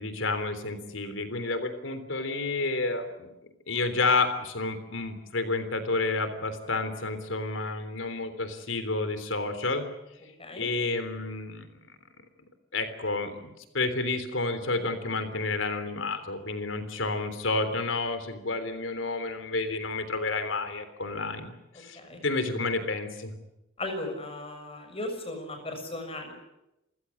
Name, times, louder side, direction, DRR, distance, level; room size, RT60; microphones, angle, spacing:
voice 1, 0.0-3.3 3.7-9.8 10.6-11.8 12.7-13.5 13.7-23.3, left 3 dB, 85° left, 10 dB, 3.5 m, -30 dB
voice 2, 23.8-26.3, left 1 dB, 30° left, 5 dB, 6.7 m, -36 dB
28.0 x 16.0 x 9.9 m, 0.92 s
head